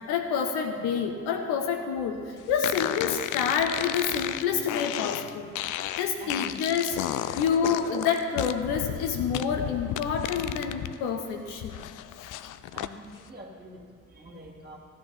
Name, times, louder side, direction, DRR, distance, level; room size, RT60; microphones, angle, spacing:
voice 1, 0.1-5.5 5.9-7.0 7.4-11.8, left 6 dB, 60° left, 4 dB, 1.1 m, -28 dB
sound 1, 2.6-10.9 11.3-12.9, left 13 dB, 45° left, 0.5 m, -33 dB
voice 2, 6.2-6.9 7.2-7.3 12.7-14.8, right 1 dB, 20° right, -2 dB, 2.8 m, -46 dB
15.5 x 9.8 x 5.6 m, 2.3 s
figure-of-eight pair, 40°, 43 cm